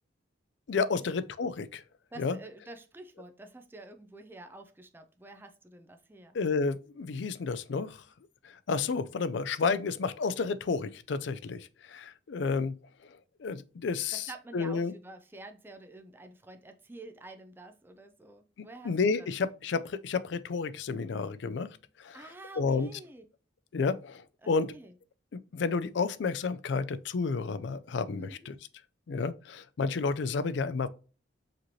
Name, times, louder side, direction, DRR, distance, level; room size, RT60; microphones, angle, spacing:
voice 1, 0.7-1.8 2.2-2.4 6.3-8.0 8.7-12.7 13.4-14.9 18.8-21.7 22.0-22.3 22.6-22.9 23.7-24.7 25.3-28.5 29.1-30.9, left 4 dB, 65° left, 0.4 m, -31 dB
voice 2, 2.1-6.4 14.1-19.3 22.1-23.2 24.4-24.9 28.2-28.5, right 2 dB, 10° right, 0.4 m, -48 dB
5.0 x 3.1 x 2.7 m
head